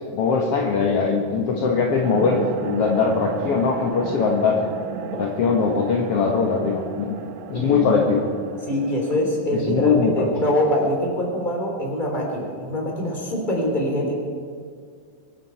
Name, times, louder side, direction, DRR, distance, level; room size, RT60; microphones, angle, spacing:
voice 1, 0.1-4.7 5.2-7.1 7.5-8.3 9.5-10.1 10.4-10.5, left 5 dB, 60° left, -1 dB, 2.0 m, -21 dB
sound 1, 2.0-9.2, right 7 dB, 80° right, 1.1 m, -34 dB
voice 2, 7.5-7.9 8.7-14.1, equal, 15° left, -1 dB, 3.1 m, -24 dB
24.0 x 10.0 x 4.6 m, 2.1 s
omnidirectional pair, 3.3 m